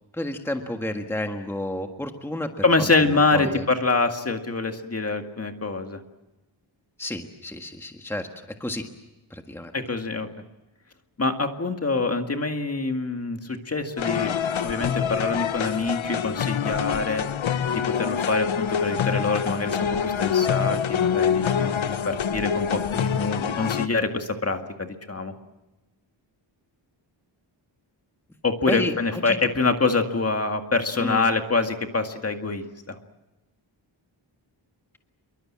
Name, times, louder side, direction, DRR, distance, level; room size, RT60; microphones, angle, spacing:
voice 1, 0.1-2.5 3.1-3.6 7.0-8.3 8.6-8.9 9.3-9.7 28.7-29.4 31.0-31.3, left 1 dB, 5° left, 5 dB, 1.5 m, -31 dB
voice 2, 2.6-6.0 9.7-10.3 11.2-14.3 14.6-17.3 17.7-25.3 28.4-33.0, left 3 dB, 30° left, 6 dB, 2.0 m, -25 dB
sound 1, 14.0-23.9, left 8 dB, 85° left, 1.1 m, -25 dB
27.0 x 23.5 x 7.5 m, 1.0 s
wide cardioid pair, 165°, 46 cm